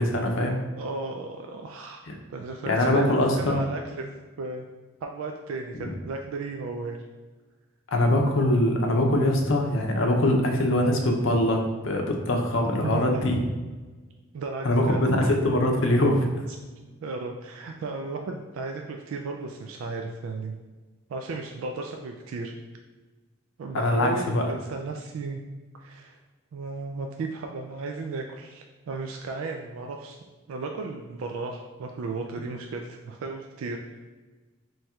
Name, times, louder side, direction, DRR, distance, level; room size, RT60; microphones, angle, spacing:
voice 1, 0.0-0.6 2.7-3.6 5.8-5.9 7.9-13.4 14.6-16.4 23.7-24.4, left 1 dB, 70° left, 2 dB, 0.6 m, -23 dB
voice 2, 0.8-2.0 2.3-4.1 4.4-4.7 5.0-7.0 10.8-11.0 12.8-13.2 14.3-15.0 17.0-20.6 21.1-22.5 23.6-25.4 25.8-26.2 26.5-30.2 30.5-33.8, right 3 dB, 80° right, 3 dB, 0.3 m, -34 dB
3.1 x 2.3 x 4.2 m, 1.3 s
head